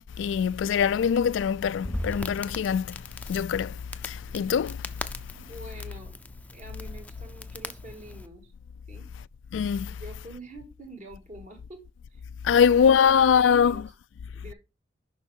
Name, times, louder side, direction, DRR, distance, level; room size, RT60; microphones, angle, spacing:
voice 1, 0.2-3.0 3.3-3.8 4.0-4.8 9.5-10.0 12.4-13.8, left 7 dB, 80° left, 0.3 m, -22 dB
Crackle, 1.6-8.3, left 1 dB, 10° left, 0.5 m, -39 dB
voice 2, 5.4-6.1 6.5-8.5 8.9-9.1 9.9-11.8 12.1-12.2 12.5-13.9 14.3-14.5, right 1 dB, 45° right, 2.2 m, -46 dB
6.9 x 5.6 x 4.4 m
head